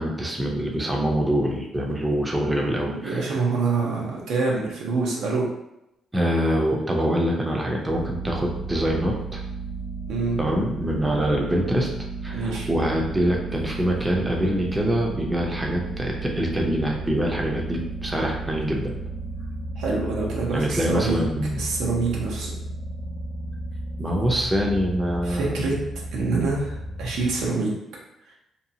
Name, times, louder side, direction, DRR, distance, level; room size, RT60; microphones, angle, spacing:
voice 1, 0.0-3.3 6.1-9.4 10.4-11.9 12.2-18.9 20.5-21.7 24.0-25.5, equal, 15° right, 0 dB, 0.5 m, -25 dB
voice 2, 2.9-5.5 10.1-10.4 12.3-12.7 19.8-21.2 21.5-22.5 25.2-25.8 26.1-27.8, right 3 dB, 85° right, -2 dB, 0.7 m, -26 dB
sound 1, 7.9-27.5, right 2 dB, 45° left, 0.4 m, -33 dB
2.7 x 2.3 x 2.7 m, 0.85 s
cardioid pair, 90°, 0 cm